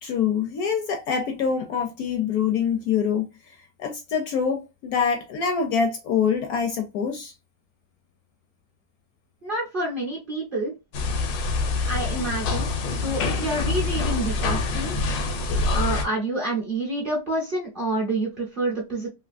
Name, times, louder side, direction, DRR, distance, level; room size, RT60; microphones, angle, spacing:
voice 1, 0.0-3.3 3.8-7.3, left 6 dB, 70° left, 0.9 m, -25 dB
voice 2, 9.4-10.7 11.8-14.9 15.7-19.1, right 2 dB, 45° right, 0.7 m, -28 dB
sound 1, 10.9-16.1, left 3 dB, 90° left, 1.4 m, -25 dB
3.2 x 2.6 x 2.4 m
omnidirectional pair, 1.9 m